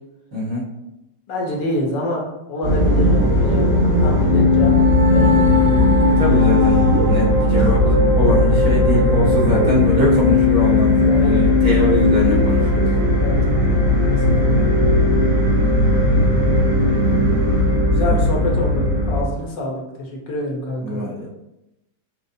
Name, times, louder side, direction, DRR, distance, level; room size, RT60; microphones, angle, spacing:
voice 1, 0.3-0.6 6.2-12.9 18.0-18.2 20.8-21.3, left 1 dB, 50° right, -6 dB, 1.4 m, -23 dB
voice 2, 1.3-2.2 2.5-3.7 4.0-4.7 5.1-6.0 7.6-7.7 11.0-11.5 13.2-13.6 14.1-14.6 17.9-21.0, left 1 dB, 75° left, -1 dB, 1.5 m, -26 dB
sound 1, 2.6-19.2, left 2 dB, 65° right, 2.2 m, -16 dB
6.4 x 2.4 x 2.6 m, 0.92 s
omnidirectional pair, 2.0 m